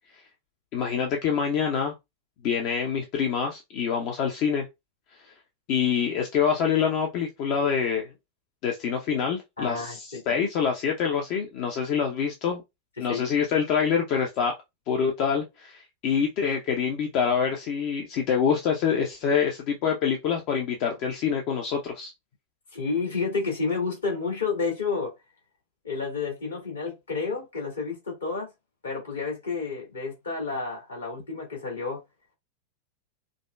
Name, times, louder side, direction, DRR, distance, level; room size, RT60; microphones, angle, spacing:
voice 1, 0.7-1.9 2.4-4.7 5.7-8.1 8.6-12.6 13.0-14.5 14.9-22.1, left 7 dB, 45° left, 0.7 m, -26 dB
voice 2, 9.6-10.2 13.0-13.2 22.7-25.1 25.8-28.5 28.8-32.0, left 4 dB, 70° left, 2.0 m, -30 dB
5.0 x 2.2 x 2.3 m
figure-of-eight pair, 90°, 0 cm